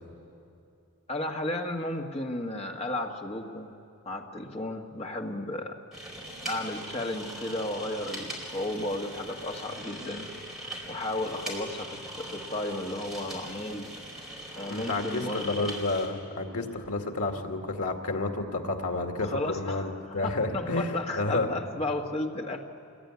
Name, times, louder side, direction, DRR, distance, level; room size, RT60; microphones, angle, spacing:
voice 1, 1.1-3.7 4.0-5.8 6.4-10.3 10.8-13.9 14.6-15.7 19.2-22.6, left 1 dB, 25° left, 2 dB, 1.6 m, -34 dB
sound 1, 5.9-16.1, right 1 dB, ahead, 4.4 m, -40 dB
voice 2, 14.7-21.5, left 2 dB, 85° left, 3 dB, 2.2 m, -30 dB
26.5 x 21.5 x 9.6 m, 2.6 s
head